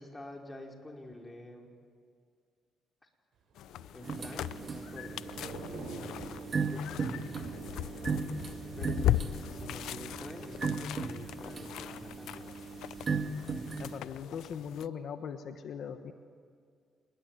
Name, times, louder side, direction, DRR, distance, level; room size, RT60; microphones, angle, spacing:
voice 1, 0.0-1.7 3.9-5.3 6.7-7.3 8.8-12.5, left 1 dB, 15° left, 1 dB, 4.9 m, -48 dB
Thunder / Rain, 3.5-13.4 13.8-14.0, right 3 dB, 70° right, 6.9 m, -48 dB
sound 1, 3.6-14.9, left 13 dB, 80° left, 0.6 m, -38 dB
sound 2, 4.0-14.0, right 4 dB, 40° right, 1.9 m, -37 dB
voice 2, 13.8-16.1, left 7 dB, 65° left, 8 dB, 1.4 m, -40 dB
28.5 x 21.0 x 9.6 m, 2.2 s
cardioid pair, 90°, 0 cm